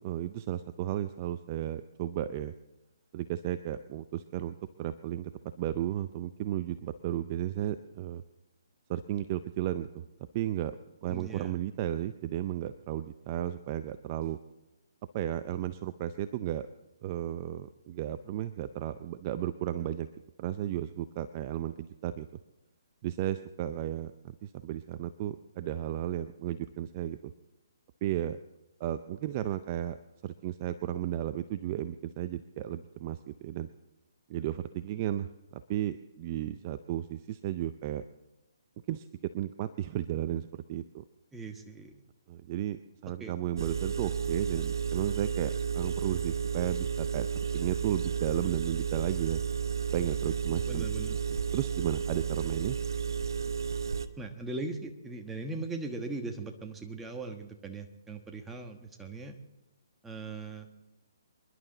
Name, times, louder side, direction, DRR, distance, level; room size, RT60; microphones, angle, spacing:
voice 1, 0.0-2.5 3.1-5.3 5.6-8.2 8.9-10.0 10.3-10.7 11.0-14.4 15.1-16.7 17.0-20.1 20.4-22.3 23.0-27.3 28.0-28.4 28.8-30.0 30.2-33.7 34.3-35.3 35.7-38.0 38.9-39.1 39.3-41.0 42.3-49.4 49.9-50.9 51.3-52.8, right 12 dB, 30° right, 12 dB, 0.5 m, -34 dB
voice 2, 11.1-11.6 41.3-42.0 43.2-43.4 50.7-51.2 54.2-59.4 60.0-60.7, right 3 dB, 10° right, 4 dB, 1.2 m, -39 dB
Engine, 43.6-54.1, right 7 dB, 75° right, 1.0 m, -32 dB
27.5 x 11.0 x 4.0 m, 1.0 s
hypercardioid pair, 150°, 2 cm